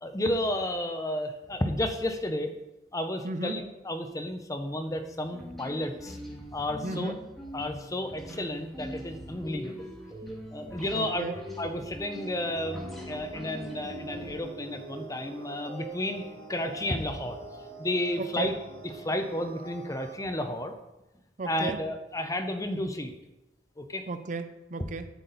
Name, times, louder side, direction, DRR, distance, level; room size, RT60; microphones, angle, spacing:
voice 1, 0.0-2.5 2.9-6.2 6.5-7.1 7.5-9.9 10.5-16.2 16.5-17.4 17.8-18.5 18.8-20.7 21.4-23.1 23.8-24.0, left 1 dB, 20° left, 7 dB, 0.7 m, -32 dB
voice 2, 3.2-3.6 6.8-7.2 10.9-11.4 18.2-18.6 21.4-21.8 24.1-25.1, right 3 dB, 45° right, 9 dB, 0.5 m, -35 dB
sound 1, 4.7-14.3, equal, ahead, 1.8 m, -43 dB
sound 2, 12.1-20.1, right 2 dB, 80° right, 1.6 m, -44 dB
8.5 x 8.0 x 4.0 m, 0.96 s
head